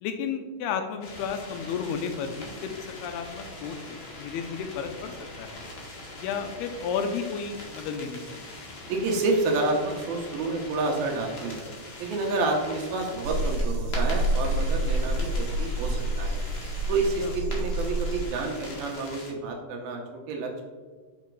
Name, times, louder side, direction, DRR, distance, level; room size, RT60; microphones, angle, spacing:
voice 1, 0.0-2.8 3.0-5.6 6.2-8.6 17.2-17.3, left 6 dB, 80° left, 6 dB, 2.5 m, -33 dB
sound 1, 1.0-19.3, left 2 dB, 50° left, 1.5 m, -42 dB
voice 2, 8.9-11.7 12.0-16.4 16.9-20.6, right 3 dB, 70° right, 1 dB, 2.6 m, -29 dB
sound 2, 13.2-18.3, right 1 dB, 50° right, 2.2 m, -28 dB
7.2 x 5.0 x 4.6 m, 1.4 s
omnidirectional pair, 4.7 m